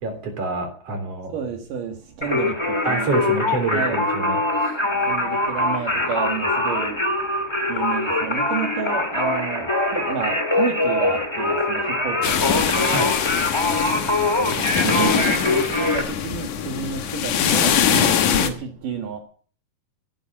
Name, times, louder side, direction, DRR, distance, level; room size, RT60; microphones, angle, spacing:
voice 1, 0.0-1.3 2.8-4.4 12.9-13.1, right 3 dB, 50° right, 4.5 m, -27 dB
voice 2, 1.3-2.5 2.9-3.3 3.7-4.0 5.1-7.0 7.7-12.2 12.5-12.6 14.4-19.2, right 7 dB, 75° right, 3.3 m, -30 dB
Singing, 2.2-16.0, left 2 dB, 10° left, 1.7 m, -23 dB
sound 1, 12.2-18.5, left 8 dB, 70° left, 2.8 m, -22 dB
15.5 x 12.0 x 6.1 m
omnidirectional pair, 3.8 m